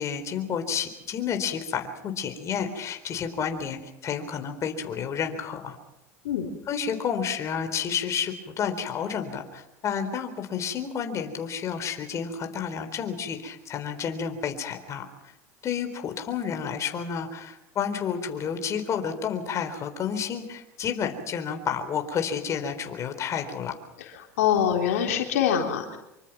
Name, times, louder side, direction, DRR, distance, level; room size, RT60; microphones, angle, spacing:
voice 1, 0.0-5.8 6.7-15.0 15.6-23.8, left 7 dB, 40° left, 6 dB, 4.0 m, -30 dB
voice 2, 24.4-26.0, left 9 dB, 85° left, 3 dB, 3.5 m, -24 dB
26.0 x 24.5 x 6.0 m, 0.86 s
hypercardioid pair, 95°, 8 cm